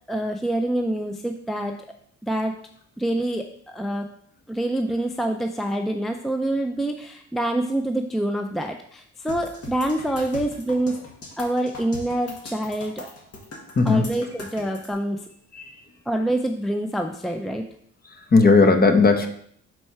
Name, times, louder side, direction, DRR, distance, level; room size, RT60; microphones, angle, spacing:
voice 1, 0.1-1.8 2.2-2.6 3.0-4.1 4.5-11.0 11.4-13.1 13.9-15.3 16.1-17.6, right 1 dB, ahead, 5 dB, 0.4 m, -26 dB
sound 1, 9.3-14.9, left 2 dB, 55° left, 1.8 m, -39 dB
voice 2, 13.8-14.1 15.5-15.8 18.1-19.3, left 3 dB, 30° left, 6 dB, 0.9 m, -17 dB
4.5 x 4.5 x 5.5 m, 0.64 s
cardioid pair, 90°, 30 cm